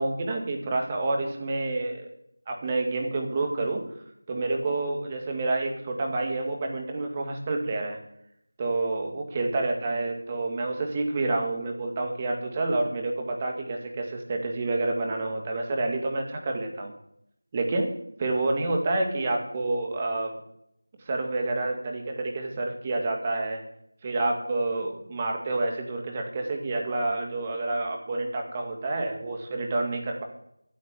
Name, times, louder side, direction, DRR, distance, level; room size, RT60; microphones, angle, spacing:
voice 1, 0.0-2.1 2.5-3.9 4.3-8.0 8.6-16.9 17.5-17.9 18.2-20.3 21.1-23.6 24.0-30.2, right 2 dB, 15° right, 2 dB, 2.1 m, -28 dB
14.0 x 8.1 x 8.3 m, 0.75 s
figure-of-eight pair, 170°, 0 cm